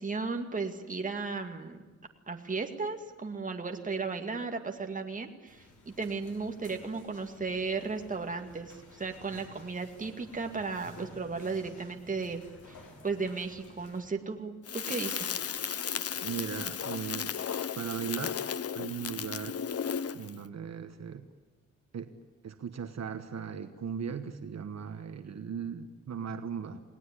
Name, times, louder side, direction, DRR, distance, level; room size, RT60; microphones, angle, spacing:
voice 1, 0.0-1.8 2.3-12.4 12.7-15.4, right 4 dB, 25° right, 4 dB, 2.2 m, -35 dB
sound 1, 5.5-14.0, left 2 dB, 85° left, 6.1 m, -54 dB
Crackle, 14.7-20.4, left 7 dB, 55° left, 0.8 m, -35 dB
voice 2, 16.2-17.4 17.8-18.5 18.7-19.6 20.1-21.3 21.9-22.1 22.4-26.8, right 7 dB, 60° right, 8 dB, 1.4 m, -38 dB
29.0 x 19.0 x 9.9 m, 1.3 s
wide cardioid pair, 175°, 29 cm